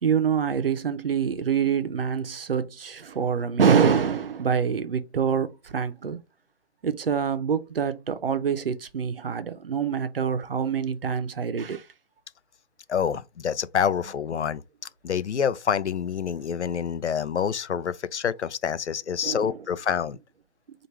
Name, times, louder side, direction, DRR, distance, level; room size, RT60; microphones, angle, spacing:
voice 1, 0.0-6.2 6.8-11.9 19.2-19.6, right 7 dB, 55° right, 0.6 m, -25 dB
voice 2, 12.9-14.6 15.0-20.2, left 7 dB, 90° left, 0.6 m, -27 dB
4.6 x 2.5 x 3.0 m
figure-of-eight pair, 160°, 33 cm